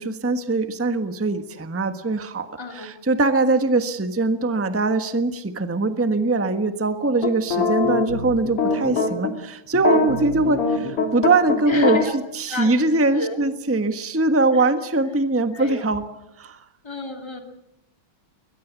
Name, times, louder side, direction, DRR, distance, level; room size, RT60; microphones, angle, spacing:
voice 1, 0.0-12.0 12.3-16.0 16.4-16.6, right 3 dB, 10° right, 9 dB, 1.0 m, -22 dB
voice 2, 2.6-2.9 11.6-12.1 12.5-13.4 14.5-14.7 15.5-15.9 16.8-17.4, left 2 dB, 10° left, 4 dB, 2.8 m, -31 dB
sound 1, 7.2-9.3 9.7-12.1, left 4 dB, 80° left, 3.8 m, -22 dB
22.5 x 21.0 x 8.4 m, 0.82 s
omnidirectional pair, 2.4 m